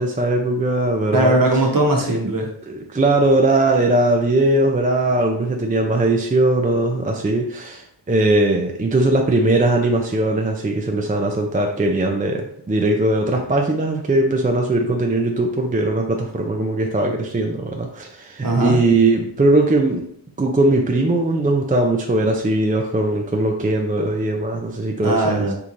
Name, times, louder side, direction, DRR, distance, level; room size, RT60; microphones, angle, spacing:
voice 1, 0.0-1.4 2.7-20.0 20.4-25.5, right 2 dB, 20° right, 2 dB, 0.4 m, -19 dB
voice 2, 1.1-2.5 18.4-18.8 25.0-25.5, right 2 dB, 50° right, 0 dB, 1.0 m, -19 dB
3.6 x 3.0 x 2.6 m, 0.66 s
wide cardioid pair, 45°, 44 cm